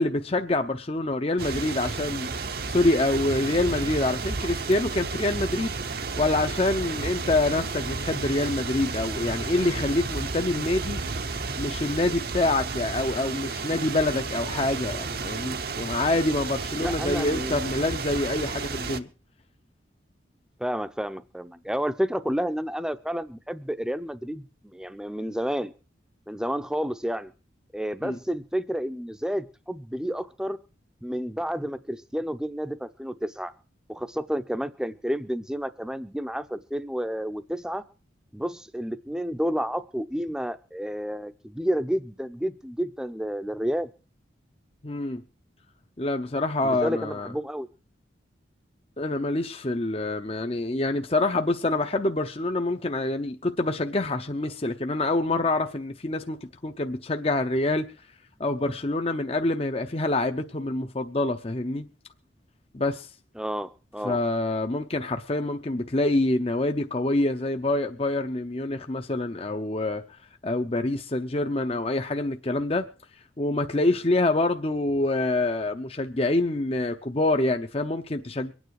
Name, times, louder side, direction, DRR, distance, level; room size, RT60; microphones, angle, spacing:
voice 1, 0.0-2.3 2.7-5.7 6.2-11.0 11.6-19.1 28.0-28.2 44.8-45.2 46.0-47.3 49.0-57.9 58.4-61.9 62.7-63.1 64.0-70.0 70.4-72.9 73.4-78.5, left 2 dB, 30° left, 0.7 m, -26 dB
sound 1, 1.4-19.0, right 4 dB, 55° right, 0.9 m, -32 dB
voice 2, 16.7-17.6 20.6-25.7 26.3-27.3 27.7-30.6 31.0-33.5 33.9-37.8 38.3-43.9 46.6-47.7 63.4-64.2, equal, 5° right, 0.7 m, -30 dB
23.5 x 9.4 x 4.8 m
head